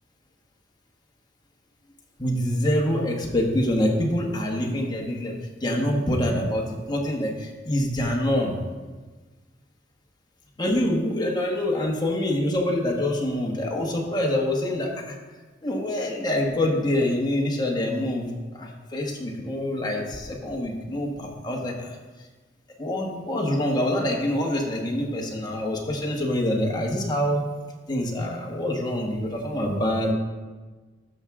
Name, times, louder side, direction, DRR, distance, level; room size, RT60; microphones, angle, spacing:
voice 1, 2.2-8.6 10.6-15.2 15.6-22.0 22.8-27.5 27.9-30.1, left 1 dB, 20° left, -1 dB, 1.4 m, -25 dB
13.0 x 6.1 x 3.7 m, 1.3 s
head